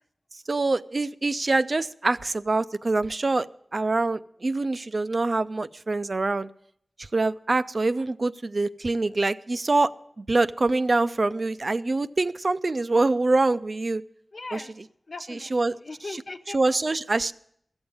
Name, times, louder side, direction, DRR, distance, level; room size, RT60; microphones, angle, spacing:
voice 1, 0.5-3.5 3.7-6.5 7.0-14.0 14.5-14.6 15.5-15.8 16.5-17.3, right 3 dB, 60° right, 13 dB, 0.5 m, -25 dB
voice 2, 14.3-14.7 15.1-16.9, left 3 dB, 70° left, 5 dB, 1.0 m, -40 dB
15.0 x 7.1 x 9.6 m, 0.69 s
wide cardioid pair, 50°, 0 cm